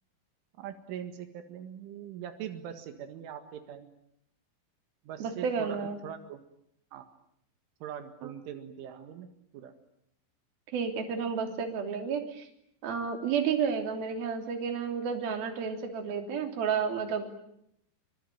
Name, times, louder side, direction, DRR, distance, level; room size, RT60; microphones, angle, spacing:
voice 1, 0.6-3.9 5.1-6.4 6.9-7.1 7.8-9.3 9.5-9.7, right 9 dB, 85° right, 7 dB, 4.3 m, -42 dB
voice 2, 5.2-6.0 8.2-8.3 10.7-12.5 12.8-17.4, right 6 dB, 55° right, 5 dB, 4.8 m, -31 dB
26.0 x 25.0 x 9.2 m, 0.74 s
omnidirectional pair, 5.5 m